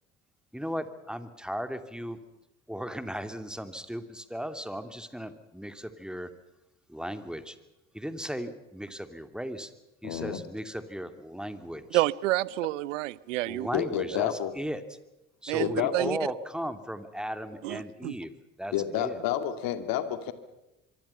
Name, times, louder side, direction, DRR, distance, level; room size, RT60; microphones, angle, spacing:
voice 1, 0.5-2.2 2.7-6.3 6.9-7.6 7.9-9.7 10.0-12.0 13.4-14.8 15.4-18.3 18.6-19.2, equal, ahead, 9 dB, 2.7 m, -36 dB
voice 2, 10.0-10.4 13.7-14.5 15.6-16.2 18.7-20.3, left 10 dB, 65° left, 10 dB, 2.4 m, -29 dB
voice 3, 11.9-13.7 15.5-16.2 17.6-18.1, right 18 dB, 80° right, 22 dB, 0.7 m, -29 dB
24.5 x 24.5 x 5.7 m, 0.96 s
hypercardioid pair, 55°, 37 cm